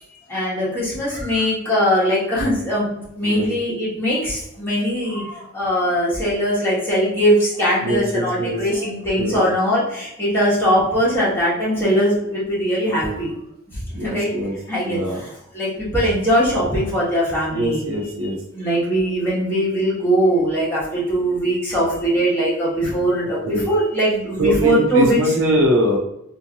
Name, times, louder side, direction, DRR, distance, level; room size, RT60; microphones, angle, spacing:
voice 1, 0.3-13.3 14.0-14.3 14.7-15.0 15.5-17.8 18.5-25.2, equal, 10° left, -8 dB, 1.2 m, -20 dB
voice 2, 7.8-8.6 9.2-9.4 12.9-13.2 13.9-14.5 14.8-15.2 17.5-18.4 23.4-23.7 24.4-26.0, equal, 75° right, 0 dB, 0.7 m, -22 dB
3.7 x 2.6 x 2.9 m, 0.79 s
head